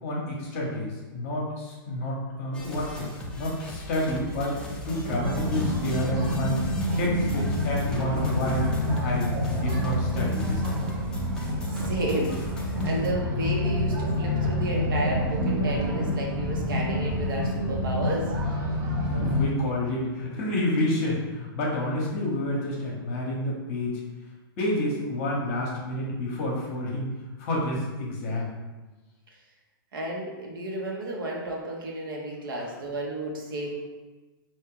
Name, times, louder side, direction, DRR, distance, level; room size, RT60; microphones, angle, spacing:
voice 1, 0.0-3.1 3.4-6.6 7.0-8.7 9.0-10.9 19.1-24.0 24.6-28.5, left 1 dB, 35° left, -3 dB, 1.0 m, -29 dB
sound 1, 2.5-13.1, left 1 dB, 5° left, 0.6 m, -39 dB
sound 2, 5.0-19.4, equal, 45° right, 1.0 m, -27 dB
voice 2, 11.6-18.3 29.9-33.8, right 1 dB, 65° right, -2 dB, 1.2 m, -32 dB
4.5 x 2.6 x 3.8 m, 1.2 s
hypercardioid pair, 155°, 12 cm